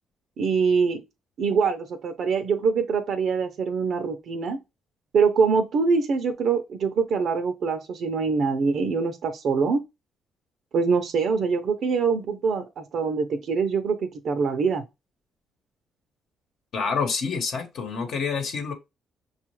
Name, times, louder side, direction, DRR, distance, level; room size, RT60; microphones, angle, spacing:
voice 1, 0.4-1.0 1.4-4.6 5.1-9.8 10.7-14.8, right 5 dB, 65° right, 0.6 m, -24 dB
voice 2, 16.7-18.7, left 5 dB, 70° left, 1.0 m, -27 dB
5.5 x 2.4 x 3.0 m
cardioid pair, 90°, 0 cm